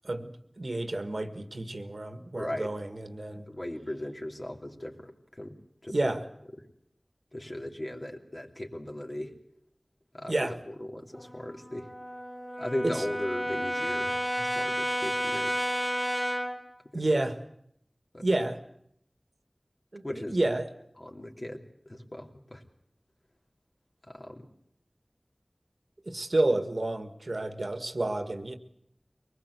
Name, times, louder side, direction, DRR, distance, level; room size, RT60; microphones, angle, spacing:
voice 1, 0.6-3.5 5.9-6.2 10.3-10.5 12.8-13.0 16.9-17.4 18.2-18.6 19.9-20.7 26.0-28.6, right 2 dB, 70° right, 8 dB, 1.6 m, -29 dB
voice 2, 2.3-2.7 3.5-5.5 5.8-6.1 6.6-6.7 7.3-9.3 10.1-11.9 12.6-15.7 16.9-17.2 18.1-18.3 20.0-20.4 21.0-22.6 24.0-24.5, left 1 dB, 45° left, 1 dB, 3.0 m, -38 dB
Brass instrument, 11.1-16.7, equal, 5° left, 1.1 m, -31 dB
23.0 x 19.5 x 8.2 m, 0.71 s
wide cardioid pair, 40°, 0 cm